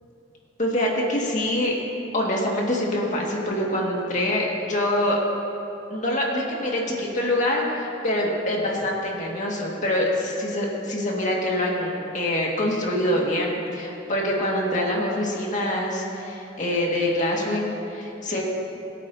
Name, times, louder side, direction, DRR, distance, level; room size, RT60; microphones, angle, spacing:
voice 1, 0.6-1.8 2.1-5.2 5.9-18.4, left 1 dB, 40° left, -2 dB, 1.9 m, -25 dB
22.5 x 8.4 x 2.8 m, 2.9 s
head